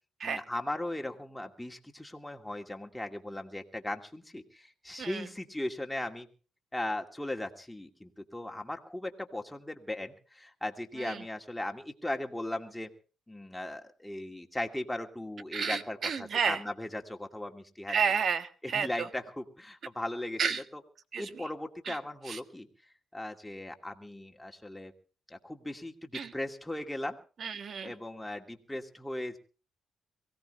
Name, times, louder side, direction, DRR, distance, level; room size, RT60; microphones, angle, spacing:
voice 1, 0.2-6.3 6.7-12.9 13.3-18.0 18.6-20.8 21.2-22.7 23.1-24.9 25.3-27.2 27.8-29.4, left 1 dB, 5° left, 3 dB, 2.3 m, -38 dB
voice 2, 15.5-16.6 17.9-18.9 20.4-20.6 21.1-21.2 21.9-22.0 22.3-22.4 26.1-26.3 27.4-27.9, right 6 dB, 55° right, 10 dB, 1.6 m, -30 dB
23.5 x 17.0 x 3.3 m, 0.37 s
cardioid pair, 95°, 0 cm